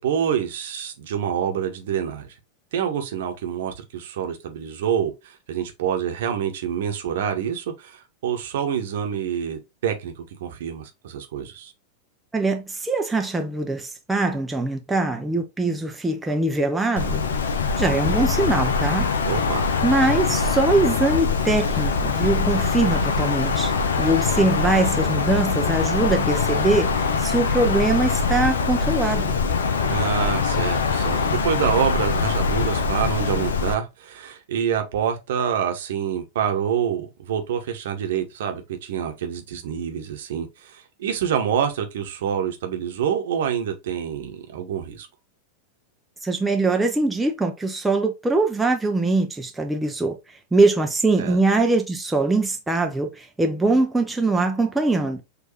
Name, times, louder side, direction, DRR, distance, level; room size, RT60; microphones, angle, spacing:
voice 1, 0.0-2.3 2.7-11.7 19.2-19.7 29.9-45.1 51.2-51.4, right 8 dB, 55° right, 1.0 m, -27 dB
voice 2, 12.3-17.2 17.8-19.1 19.8-23.7 24.0-29.4 46.2-50.2 50.5-55.2, right 2 dB, 5° right, 0.6 m, -22 dB
Wind, 17.0-33.7, left 5 dB, 65° left, 0.6 m, -23 dB
6.3 x 2.6 x 3.1 m
figure-of-eight pair, 90°, 0 cm